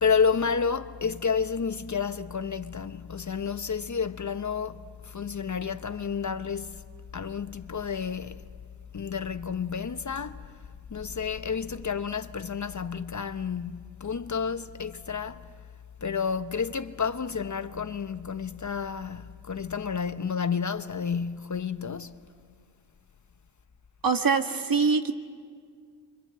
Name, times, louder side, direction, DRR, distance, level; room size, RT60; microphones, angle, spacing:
voice 1, 0.0-6.8 7.1-8.4 8.9-10.4 10.9-15.5 16.0-22.2, left 6 dB, 40° left, 0.8 m, -30 dB
voice 2, 24.0-25.1, right 5 dB, 50° right, 1.6 m, -23 dB
25.5 x 25.0 x 7.7 m
cardioid pair, 60°, 46 cm